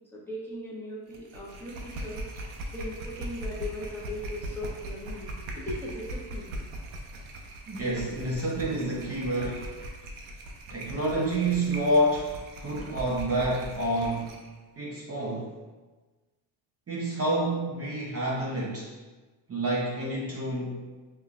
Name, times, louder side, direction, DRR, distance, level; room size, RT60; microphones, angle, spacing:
voice 1, 0.1-2.3 2.7-6.5, left 1 dB, 5° left, -6 dB, 0.9 m, -38 dB
sound 1, 1.1-14.5, right 1 dB, 75° right, 0.7 m, -40 dB
voice 2, 7.7-9.6 10.7-12.3 12.6-14.4 14.8-15.5 16.9-18.9 19.5-20.8, right 1 dB, 30° right, -5 dB, 0.7 m, -28 dB
5.5 x 2.2 x 2.4 m, 1.3 s
cardioid pair, 95°, 48 cm